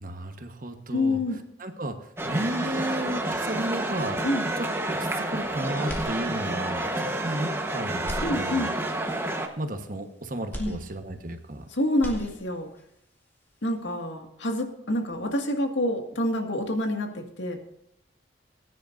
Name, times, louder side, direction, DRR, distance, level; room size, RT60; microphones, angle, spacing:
voice 1, 0.0-1.2 1.6-4.2 4.6-8.7 9.5-11.7, right 1 dB, 45° right, 6 dB, 1.3 m, -33 dB
voice 2, 0.9-1.4 4.2-4.4 8.2-8.7 10.6-10.8 11.7-12.7 13.6-17.6, left 1 dB, 80° left, 3 dB, 2.0 m, -27 dB
sound 1, 2.2-9.5, right 1 dB, 15° right, 1.2 m, -29 dB
sound 2, 5.8-6.8 7.2-7.3 7.9-9.0 10.5-11.6 11.9-12.8, equal, 10° left, 2.0 m, -38 dB
20.5 x 10.0 x 2.6 m, 0.81 s
head